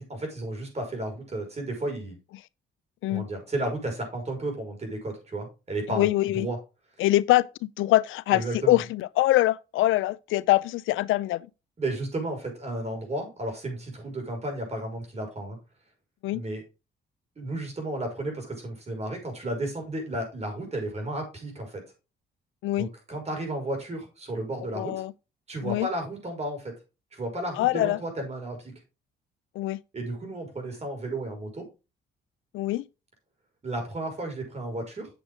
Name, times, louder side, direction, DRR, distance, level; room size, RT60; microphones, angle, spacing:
voice 1, 0.1-2.2 3.1-6.1 6.3-6.6 8.3-8.8 11.8-15.6 16.3-16.6 17.4-21.8 22.8-25.0 25.5-26.7 27.1-28.7 29.9-31.7 33.6-35.1, right 1 dB, 35° right, 5.6 m, -33 dB
voice 2, 5.9-6.5 7.0-11.5 16.2-16.4 22.6-22.9 24.7-25.1 25.6-25.9 27.6-28.0 29.6-29.8 32.5-32.9, left 16 dB, 85° left, 0.5 m, -24 dB
8.3 x 7.0 x 3.7 m
cardioid pair, 90°, 20 cm